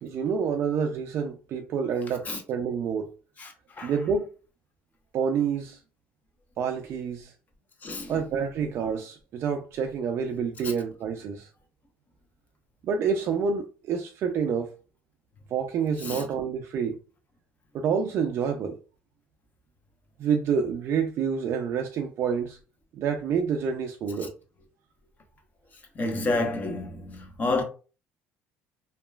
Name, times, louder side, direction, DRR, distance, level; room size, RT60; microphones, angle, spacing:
voice 1, 0.0-3.1 3.8-4.3 5.1-5.8 6.6-7.3 8.1-11.5 12.8-14.7 15.5-17.0 17.7-18.8 20.2-22.6 22.9-24.3, right 6 dB, 55° right, 0.4 m, -28 dB
voice 2, 3.4-3.9 7.8-8.1 10.6-10.7 16.0-16.3 25.9-27.6, left 2 dB, 35° left, 0.9 m, -30 dB
2.9 x 2.3 x 2.3 m
cardioid pair, 105°, 5 cm